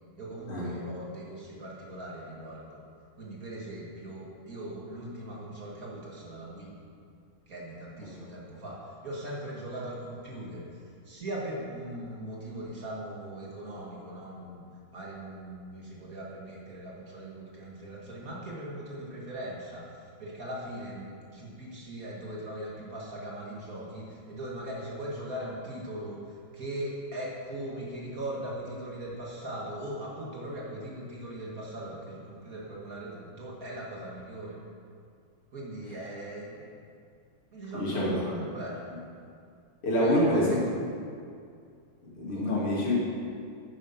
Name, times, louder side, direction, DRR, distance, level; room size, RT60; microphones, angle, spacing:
voice 1, 0.2-2.8 3.2-6.7 7.5-10.7 11.1-14.6 14.9-19.9 20.2-26.2 26.5-34.6 35.5-36.7 37.5-38.8 40.0-40.8 42.3-42.6, right 1 dB, 40° right, -4 dB, 2.3 m, -39 dB
voice 2, 37.7-38.1 39.8-40.6 42.0-43.0, left 1 dB, 90° left, -6 dB, 3.7 m, -26 dB
10.0 x 9.2 x 5.8 m, 2.3 s
omnidirectional pair, 2.4 m